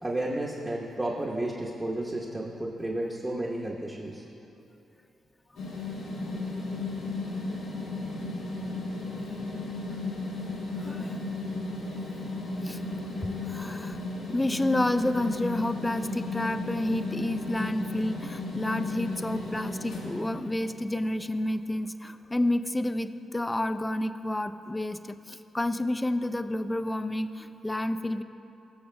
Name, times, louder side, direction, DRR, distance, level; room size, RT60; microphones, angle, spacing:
voice 1, 0.0-4.2, right 1 dB, 25° right, -3 dB, 1.0 m, -32 dB
sound 1, 5.6-20.9, left 2 dB, 90° left, 1.5 m, -35 dB
voice 2, 10.8-11.2 12.6-12.8 13.4-14.0 14.3-28.2, left 1 dB, 20° left, 11 dB, 0.4 m, -30 dB
19.0 x 6.6 x 2.2 m, 2.8 s
supercardioid pair, 50°, 0 cm